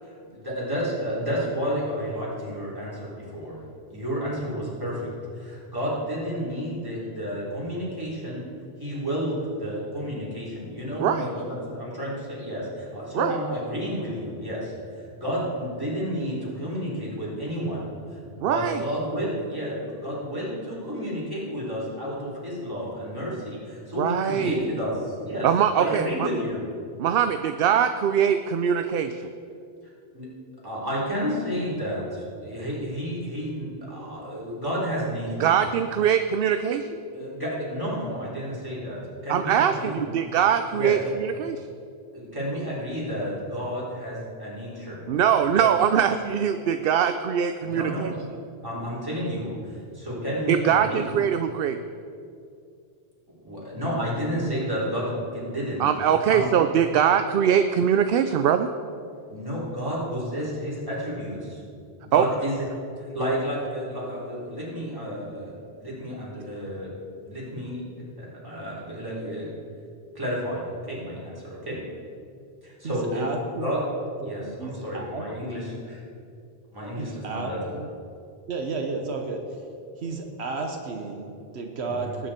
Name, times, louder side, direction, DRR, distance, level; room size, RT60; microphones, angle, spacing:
voice 1, 0.3-3.6 3.9-5.0 5.4-8.5 8.8-14.7 15.1-25.5 25.7-26.6 30.1-30.3 30.6-35.6 37.1-40.0 40.7-40.9 42.1-45.0 45.6-45.7 47.6-48.1 48.6-51.1 53.4-55.8 56.3-56.4 59.3-61.6 62.0-62.5 63.0-66.9 67.2-67.8 68.2-69.5 70.1-71.8 72.6-73.8 74.2-76.0 76.7-77.8 81.9-82.1, equal, 20° right, -7 dB, 4.0 m, -31 dB
voice 2, 18.4-18.8 24.0-24.6 25.4-26.3 27.0-29.3 35.4-36.9 39.3-41.7 45.1-48.1 50.5-51.8 55.8-58.7 62.1-62.3, right 8 dB, 65° right, 9 dB, 0.7 m, -22 dB
voice 3, 72.8-73.7 74.2-75.6 77.0-77.9 78.5-79.4 80.0-82.3, right 3 dB, 85° right, 3 dB, 1.4 m, -33 dB
19.5 x 9.3 x 4.4 m, 2.5 s
omnidirectional pair, 1.1 m